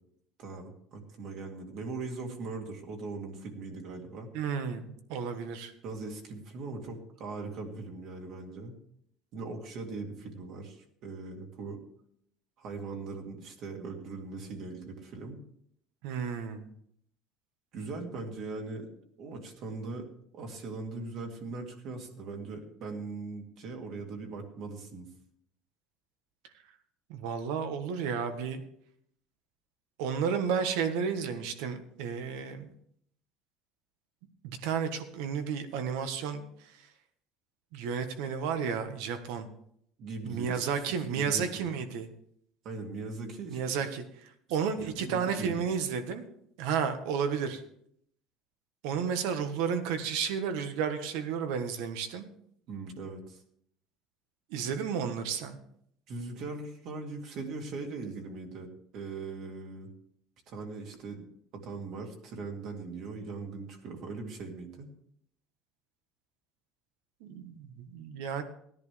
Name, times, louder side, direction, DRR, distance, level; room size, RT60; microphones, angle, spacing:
voice 1, 0.4-4.3 5.8-8.7 9.3-11.8 12.6-15.4 17.7-18.9 19.2-20.1 20.3-25.1 40.0-41.7 42.6-43.6 44.7-45.6 52.7-53.4 56.1-59.9 60.5-61.2 61.5-64.9, right 3 dB, 50° right, 2 dB, 2.5 m, -40 dB
voice 2, 4.3-5.7 16.0-16.7 27.1-28.6 30.0-32.7 34.4-36.4 36.7-36.8 37.7-39.5 40.2-42.1 43.5-46.2 46.6-47.6 48.8-52.2 54.5-55.6 67.2-68.4, right 6 dB, 80° right, 8 dB, 1.5 m, -32 dB
17.0 x 10.5 x 3.4 m, 0.68 s
cardioid pair, 150°, 0 cm